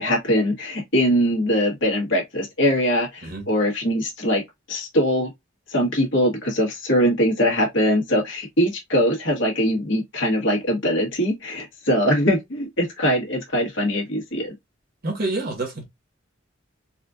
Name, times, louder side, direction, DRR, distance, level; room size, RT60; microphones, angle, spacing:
voice 1, 0.0-4.4 4.7-5.3 5.7-14.5, equal, 65° left, 1.5 m, -22 dB
voice 2, 15.0-15.8, right 2 dB, 50° right, 1.5 m, -27 dB
4.1 x 2.5 x 2.4 m
head